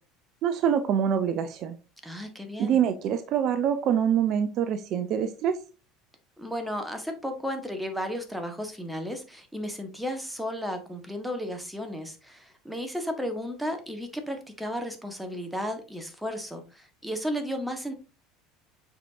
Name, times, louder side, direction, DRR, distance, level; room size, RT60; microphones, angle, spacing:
voice 1, 0.4-1.7 2.6-5.6, right 8 dB, 50° right, 10 dB, 0.6 m, -25 dB
voice 2, 2.0-2.8 6.4-17.9, equal, ahead, 5 dB, 1.5 m, -34 dB
7.5 x 4.8 x 2.7 m, 0.32 s
figure-of-eight pair, 70°, 0 cm